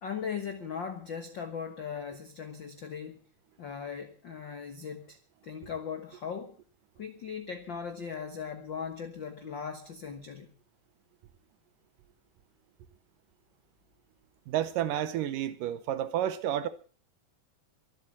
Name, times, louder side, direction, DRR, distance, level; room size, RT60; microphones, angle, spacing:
voice 1, 0.0-3.2 3.6-5.2 5.4-6.6 7.0-10.5, left 6 dB, 75° left, 1.0 m, -38 dB
voice 2, 14.5-16.7, right 11 dB, 75° right, 2.3 m, -30 dB
24.0 x 8.1 x 6.1 m
omnidirectional pair, 4.2 m